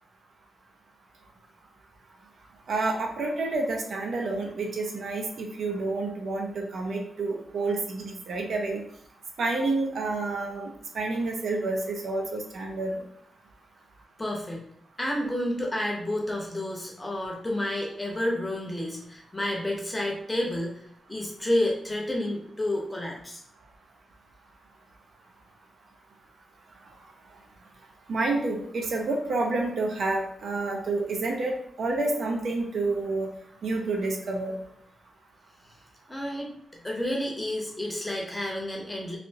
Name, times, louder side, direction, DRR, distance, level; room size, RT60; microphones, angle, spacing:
voice 1, 2.7-8.8 9.4-13.0 28.1-33.3 33.6-34.5, right 3 dB, 65° right, 1 dB, 0.6 m, -29 dB
voice 2, 14.2-14.6 15.0-20.8 21.1-23.4 36.1-36.5 36.8-39.2, left 1 dB, 10° left, -2 dB, 0.7 m, -30 dB
3.3 x 2.5 x 2.7 m, 0.68 s
wide cardioid pair, 135°, 0 cm